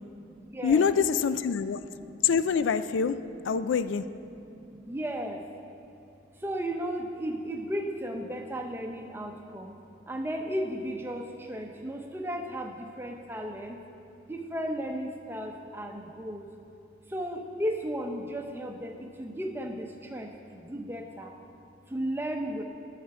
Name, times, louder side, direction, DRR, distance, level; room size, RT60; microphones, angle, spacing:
voice 1, 0.1-0.9 2.0-2.2 4.5-5.4 6.4-9.8 10.1-13.8 14.3-16.5 17.1-21.3 21.9-22.6, equal, 10° right, 3 dB, 0.7 m, -35 dB
voice 2, 0.6-1.8 2.2-3.2 3.4-4.0, left 6 dB, 85° left, 13 dB, 0.4 m, -25 dB
11.0 x 5.8 x 7.6 m, 2.8 s
head